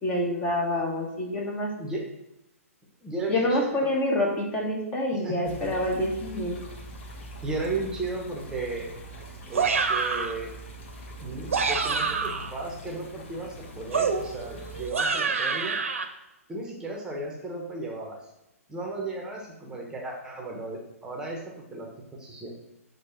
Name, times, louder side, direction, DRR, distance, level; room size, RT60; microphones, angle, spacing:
voice 1, 0.0-1.7 3.3-6.6, left 1 dB, 15° left, -1 dB, 1.1 m, -27 dB
voice 2, 3.0-3.9 5.1-5.7 7.4-8.9 9.5-10.5 11.2-15.8 16.5-18.2 18.7-22.5, right 2 dB, 10° right, 0 dB, 1.0 m, -35 dB
sound 1, 5.4-14.9, right 1 dB, 50° left, 1.3 m, -43 dB
sound 2, 9.5-10.4 11.3-12.5 13.9-16.0, right 5 dB, 60° right, 0.9 m, -27 dB
6.5 x 3.3 x 5.7 m, 0.92 s
figure-of-eight pair, 125°, 8 cm